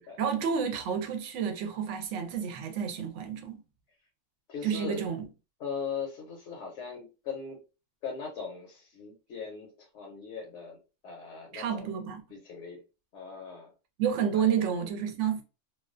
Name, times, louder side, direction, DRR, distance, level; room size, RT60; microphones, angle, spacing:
voice 1, 0.2-3.6 4.6-5.2 11.5-12.2 14.0-15.4, right 7 dB, 70° right, 0.9 m, -30 dB
voice 2, 4.5-5.0 5.6-7.6 8.0-10.8 11.0-12.0 12.3-12.8 13.1-13.7 14.1-14.5, left 5 dB, 65° left, 0.9 m, -39 dB
2.3 x 2.2 x 2.4 m
omnidirectional pair, 1.4 m